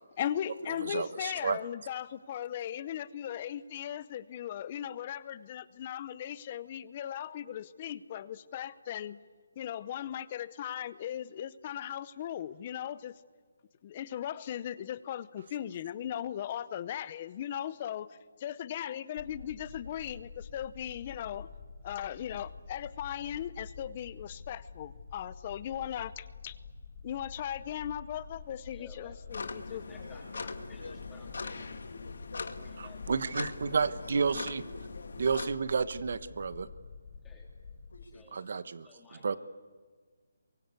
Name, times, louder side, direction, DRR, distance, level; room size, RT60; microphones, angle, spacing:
voice 1, 0.2-9.2 9.6-13.1 13.8-21.5 21.8-26.6 27.0-29.8, left 10 dB, 25° left, 17 dB, 0.7 m, -38 dB
voice 2, 0.8-1.6 33.1-34.6 35.2-36.7 38.3-38.9 39.2-39.4, right 5 dB, 50° right, 14 dB, 1.2 m, -31 dB
sound 1, 19.2-38.0, left 5 dB, 45° left, 6.5 m, -48 dB
voice 3, 28.7-29.2 29.4-31.8 32.6-33.5 37.2-37.5 38.1-38.4 38.8-39.4, left 3 dB, 5° left, -3 dB, 3.4 m, -56 dB
sound 2, 29.3-35.5, left 4 dB, 70° left, 2.0 m, -42 dB
voice 4, 31.2-32.7 33.9-35.2 37.9-38.6, left 2 dB, 90° left, 7 dB, 5.0 m, -50 dB
27.0 x 23.5 x 8.4 m, 1.5 s
hypercardioid pair, 170°, 0 cm